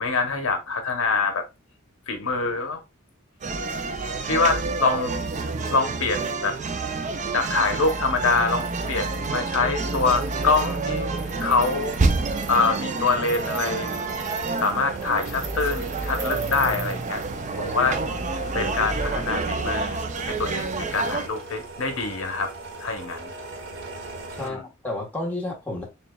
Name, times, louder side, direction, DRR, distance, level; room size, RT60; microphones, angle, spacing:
voice 1, 0.0-1.4 2.1-2.8 4.3-5.1 5.7-6.6 7.3-11.1 11.4-12.0 12.5-14.0 14.6-17.2 17.6-18.0 18.5-22.5 22.8-23.3 24.4-24.6, left 4 dB, 75° left, 0.8 m, -25 dB
sound 1, 3.4-21.3, right 3 dB, 35° right, 0.4 m, -28 dB
sound 2, 7.8-24.5, right 3 dB, 60° right, 1.2 m, -39 dB
voice 2, 18.5-19.0 24.3-25.9, left 2 dB, 10° left, 1.2 m, -32 dB
6.7 x 2.4 x 2.2 m
head